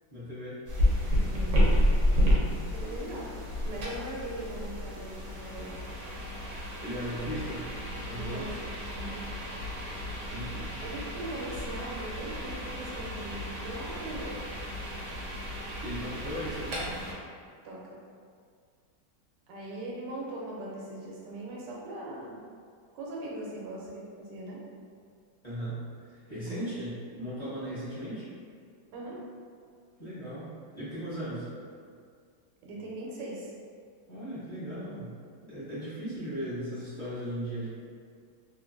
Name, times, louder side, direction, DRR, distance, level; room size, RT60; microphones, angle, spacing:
voice 1, 0.1-0.6 6.8-8.4 10.3-10.8 15.8-17.0 25.4-28.3 30.0-31.5 34.1-35.2 35.4-37.8, right 1 dB, 30° left, -14 dB, 0.8 m, -37 dB
sound 1, 0.7-17.1, equal, 60° right, 0.8 m, -31 dB
voice 2, 2.7-3.3 3.6-5.9 8.1-9.2 10.8-14.4 17.6-18.0 19.5-22.4 22.9-24.6 26.5-26.6 28.9-29.3 32.6-33.5, right 1 dB, 90° right, -4 dB, 1.3 m, -40 dB
2.9 x 2.5 x 2.5 m, 2.1 s
omnidirectional pair, 1.9 m